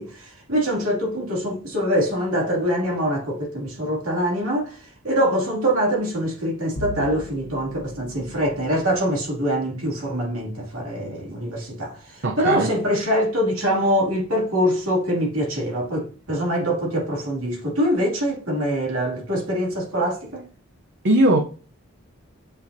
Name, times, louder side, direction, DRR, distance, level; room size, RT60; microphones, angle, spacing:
voice 1, 0.0-20.5, equal, 80° right, 2.5 m, -24 dB
Bowed string instrument, 6.7-12.4, left 1 dB, 70° left, 0.9 m, -41 dB
voice 2, 12.2-12.7 21.0-21.4, right 1 dB, 50° right, 0.7 m, -18 dB
7.0 x 5.4 x 2.7 m
head